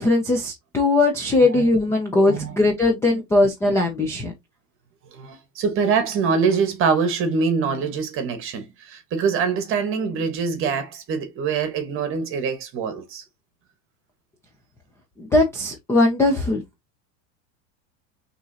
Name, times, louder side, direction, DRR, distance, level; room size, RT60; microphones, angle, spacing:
voice 1, 0.0-4.3 15.2-16.6, left 2 dB, 5° left, 0.4 m, -19 dB
voice 2, 5.1-13.2, right 5 dB, 30° right, 1.2 m, -24 dB
5.9 x 3.1 x 2.7 m
supercardioid pair, 160°, 40 cm